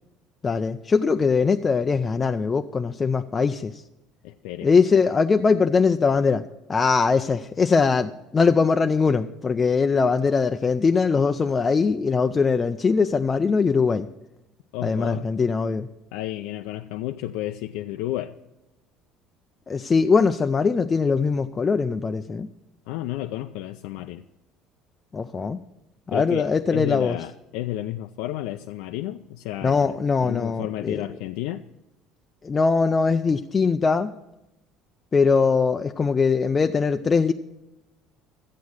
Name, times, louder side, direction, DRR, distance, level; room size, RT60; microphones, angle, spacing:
voice 1, 0.4-3.8 4.6-6.4 6.7-14.1 14.8-15.9 19.7-22.5 25.1-25.6 26.1-27.2 29.6-31.0 32.4-34.1 35.1-37.3, left 5 dB, 20° left, 7 dB, 0.3 m, -21 dB
voice 2, 4.2-4.7 14.7-15.3 16.1-18.3 22.9-24.2 26.1-29.9 30.2-31.6, left 14 dB, 80° left, 7 dB, 0.4 m, -32 dB
13.5 x 8.4 x 6.3 m, 0.94 s
cardioid pair, 165°, 0 cm